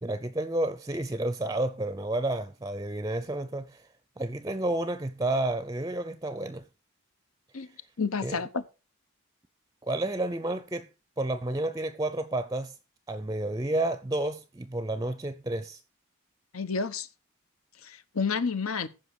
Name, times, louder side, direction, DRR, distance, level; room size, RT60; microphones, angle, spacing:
voice 1, 0.0-3.8 4.2-6.6 8.2-8.4 9.8-10.9 11.2-12.7 13.1-15.8, right 1 dB, 15° right, 0.5 m, -30 dB
voice 2, 8.0-8.6 16.5-17.1 17.8-18.9, left 5 dB, 85° left, 1.0 m, -30 dB
14.5 x 5.5 x 4.7 m
head